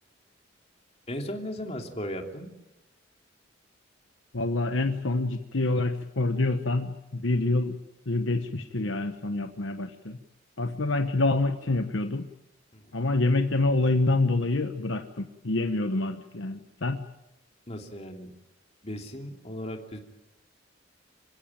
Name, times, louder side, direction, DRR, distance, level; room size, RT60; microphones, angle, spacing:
voice 1, 1.1-2.5 12.7-13.0 17.7-18.3 18.8-20.0, equal, 30° left, 3 dB, 3.0 m, -36 dB
voice 2, 4.3-10.2 10.6-12.3 12.9-17.1, left 2 dB, 70° left, 7 dB, 1.1 m, -27 dB
27.0 x 16.0 x 9.0 m, 0.93 s
head